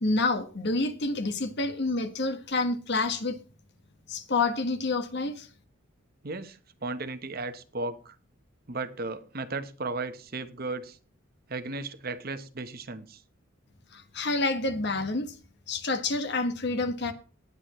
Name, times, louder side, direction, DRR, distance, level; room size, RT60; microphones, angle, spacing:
voice 1, 0.0-3.4 4.1-5.5 13.9-15.3 15.7-17.1, left 3 dB, 55° left, 1.4 m, -28 dB
voice 2, 6.2-8.2 8.7-11.0 11.5-13.2, right 3 dB, 45° right, 1.0 m, -35 dB
19.0 x 8.5 x 3.1 m
head